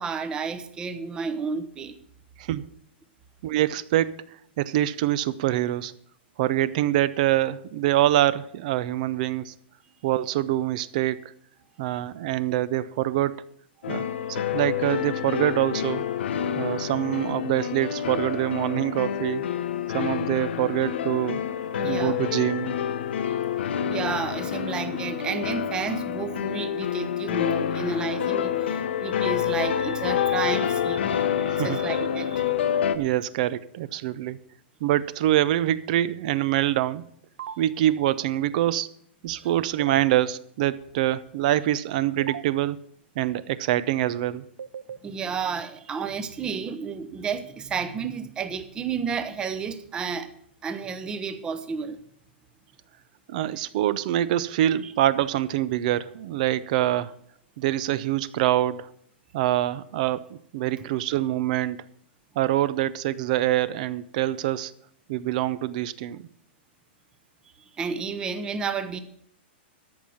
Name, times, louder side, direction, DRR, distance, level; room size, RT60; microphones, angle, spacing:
voice 1, 0.0-1.9 13.9-14.0 21.8-22.2 23.9-32.5 39.3-39.5 45.0-50.3 50.6-52.0 54.8-54.9 67.8-69.0, right 5 dB, 15° right, 0.8 m, -31 dB
voice 2, 3.4-5.9 6.4-9.5 10.0-11.2 11.8-13.4 13.9-16.0 16.6-19.5 19.9-21.4 21.8-22.7 31.6-31.8 32.9-34.4 34.8-37.1 37.6-38.9 39.2-42.8 43.2-44.5 53.3-57.2 57.6-58.9 59.3-61.8 62.4-64.7 65.1-66.3, right 13 dB, 45° right, 0.5 m, -25 dB
sound 1, 13.8-33.0, left 9 dB, 75° left, 1.0 m, -28 dB
sound 2, 37.4-37.5 39.8-39.9 42.2-42.4 44.6-45.0, right 8 dB, 90° right, 0.7 m, -35 dB
13.5 x 5.7 x 7.7 m
hypercardioid pair, 165°, 6 cm